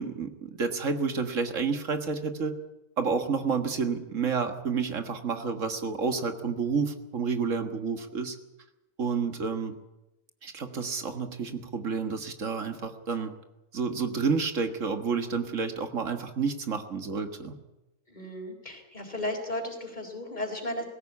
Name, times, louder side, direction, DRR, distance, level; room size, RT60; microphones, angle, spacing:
voice 1, 0.0-2.5 3.0-8.4 9.0-9.7 10.4-13.3 13.7-17.5, right 5 dB, 75° right, 7 dB, 2.0 m, -30 dB
voice 2, 18.1-20.8, left 1 dB, 35° left, 4 dB, 4.2 m, -35 dB
19.0 x 16.5 x 8.5 m, 0.99 s
omnidirectional pair, 1.3 m